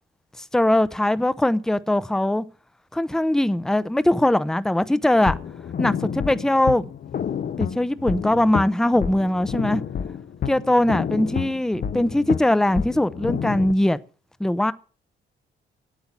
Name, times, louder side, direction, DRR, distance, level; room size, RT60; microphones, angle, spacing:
voice 1, 0.5-2.4 2.9-5.4 5.8-6.8 7.6-9.8 10.5-14.0 14.4-14.7, left 1 dB, 5° left, 0.6 m, -21 dB
sound 1, 5.2-13.7, left 8 dB, 50° left, 0.8 m, -29 dB
9.4 x 8.3 x 7.3 m
cardioid pair, 90°, 20 cm